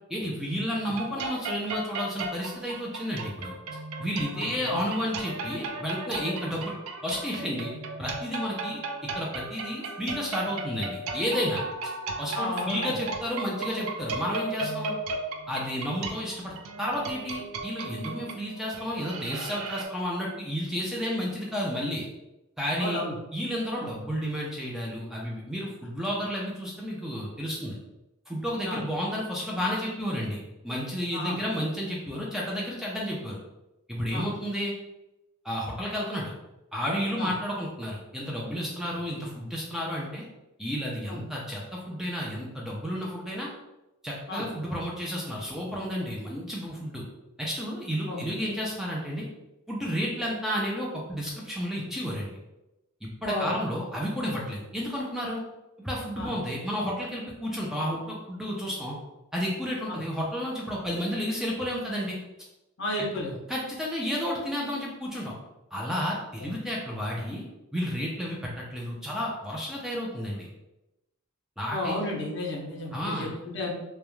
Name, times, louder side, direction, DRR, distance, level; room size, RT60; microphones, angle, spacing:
voice 1, 0.1-3.5 4.0-6.7 7.0-7.7 8.0-11.6 12.2-14.9 15.5-22.1 22.6-23.0 23.3-27.8 28.3-30.4 30.6-33.4 33.9-34.7 35.4-36.3 36.7-40.2 40.6-43.5 44.0-47.0 47.4-49.3 49.7-52.3 53.0-55.4 55.8-59.0 59.3-62.2 63.0-63.1 63.5-65.3 65.7-67.4 67.7-70.5 71.6-71.9 72.9-73.3, equal, ahead, -4 dB, 0.3 m, -31 dB
sound 1, 0.9-19.9, right 3 dB, 75° right, 0.3 m, -36 dB
voice 2, 4.3-4.8 12.3-12.9 22.8-23.1 23.8-23.9 28.6-28.8 31.1-31.4 34.1-34.3 37.2-37.3 41.1-41.2 44.3-44.4 48.1-48.2 53.2-53.5 56.2-56.3 59.9-60.0 62.8-63.4 66.4-66.5 71.7-73.7, left 1 dB, 55° left, -1 dB, 0.6 m, -33 dB
2.3 x 2.1 x 3.0 m, 0.96 s
head